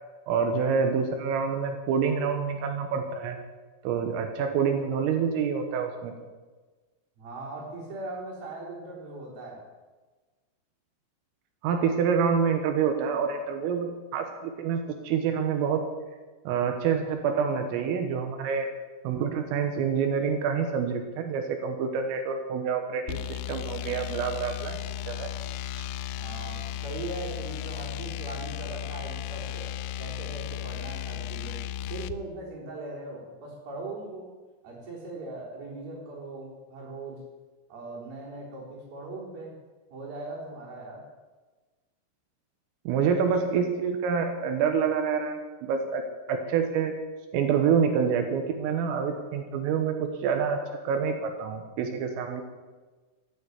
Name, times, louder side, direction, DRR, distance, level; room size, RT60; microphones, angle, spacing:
voice 1, 0.3-3.4 3.8-6.1 11.6-15.9 16.5-18.7 19.1-24.8 25.1-25.3 25.8-25.9 42.9-46.0 46.3-47.0 47.3-52.4, right 6 dB, 85° right, 5 dB, 3.9 m, -27 dB
voice 2, 7.2-9.6 26.2-29.7 30.0-31.6 31.9-34.3 34.6-37.2 37.7-39.5 39.9-41.0, right 2 dB, 45° right, -7 dB, 5.4 m, -39 dB
sound 1, 23.1-32.2, left 11 dB, 85° left, 3.1 m, -35 dB
14.5 x 9.4 x 9.5 m, 1.3 s
omnidirectional pair, 5.9 m